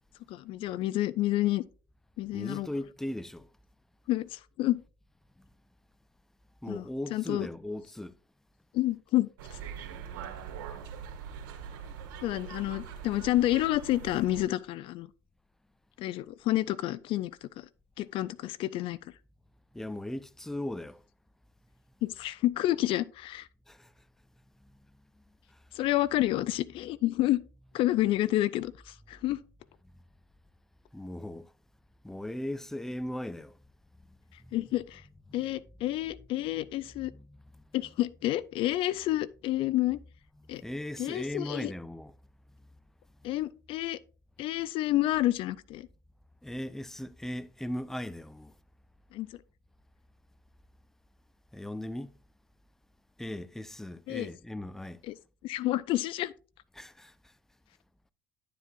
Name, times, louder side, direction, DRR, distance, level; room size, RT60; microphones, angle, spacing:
voice 1, 0.3-1.6 2.2-2.7 4.1-4.8 6.7-6.8 7.1-7.5 8.7-9.6 12.2-15.1 16.0-17.7 18.0-19.1 22.0-23.5 25.7-27.4 27.7-29.4 34.5-35.0 35.3-37.1 37.7-40.0 40.5-40.6 41.0-41.7 43.2-44.0 44.4-45.9 49.1-49.4 54.1-54.3 55.1-55.2 55.4-56.3, left 15 dB, 60° left, 0.4 m, -29 dB
voice 2, 2.3-3.5 5.4-5.5 6.6-8.2 19.7-21.0 23.7-23.9 25.5-25.6 30.9-31.5 32.0-33.6 34.5-34.6 35.3-35.4 37.1-37.6 40.6-42.1 46.4-48.5 51.5-52.1 53.2-55.0 56.7-57.3, left 1 dB, 5° left, 0.5 m, -38 dB
sound 1, 9.4-14.5, right 7 dB, 75° right, 1.8 m, -42 dB
11.0 x 7.5 x 2.5 m
hypercardioid pair, 70°, 10 cm